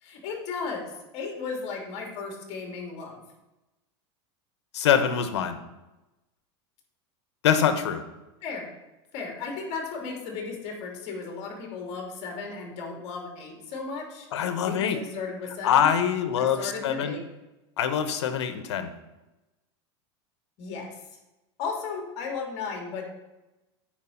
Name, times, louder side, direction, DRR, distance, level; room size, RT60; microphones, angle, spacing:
voice 1, 0.0-3.2 8.4-8.7 9.1-14.3 14.7-15.9 16.4-17.2 20.6-20.9 21.6-23.2, left 4 dB, 50° left, 2 dB, 2.8 m, -35 dB
voice 2, 4.7-5.6 7.4-8.0 14.3-15.0 15.6-17.2 17.8-18.9, left 8 dB, 90° left, 10 dB, 1.1 m, -24 dB
9.3 x 5.1 x 5.8 m, 1.0 s
supercardioid pair, 130°, 14 cm